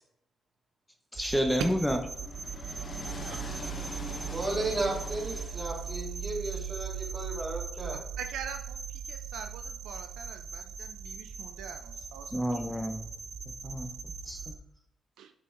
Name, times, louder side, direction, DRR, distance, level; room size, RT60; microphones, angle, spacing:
voice 1, 1.1-2.0 12.3-13.0 13.6-13.9 14.2-14.5, equal, 5° left, 0.8 m, -29 dB
sound 1, 1.1-14.6, right 6 dB, 55° right, 0.9 m, -39 dB
sound 2, 1.7-6.1, left 3 dB, 45° left, 1.3 m, -43 dB
voice 2, 4.2-8.0, right 2 dB, 35° right, 3.0 m, -34 dB
voice 3, 7.9-12.6 15.2-15.3, right 8 dB, 90° right, 0.4 m, -44 dB
8.9 x 4.2 x 3.8 m
supercardioid pair, 55°, 0 cm